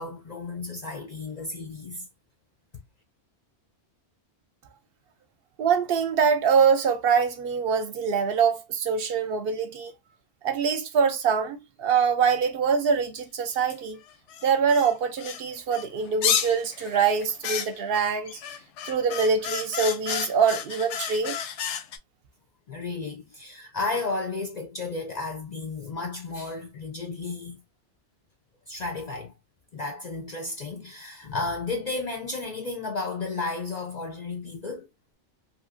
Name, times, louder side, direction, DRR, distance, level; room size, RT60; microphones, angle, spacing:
voice 1, 0.0-2.1 22.7-27.6 28.7-29.3 29.7-34.9, left 3 dB, 60° left, 0.4 m, -33 dB
voice 2, 5.6-9.9 10.4-14.0 14.4-18.4 18.8-21.4, right 6 dB, 65° right, 0.7 m, -24 dB
sound 1, 13.7-13.8 14.3-15.4 15.7-22.0, left 8 dB, 85° left, 0.9 m, -31 dB
3.0 x 2.5 x 2.4 m
omnidirectional pair, 1.2 m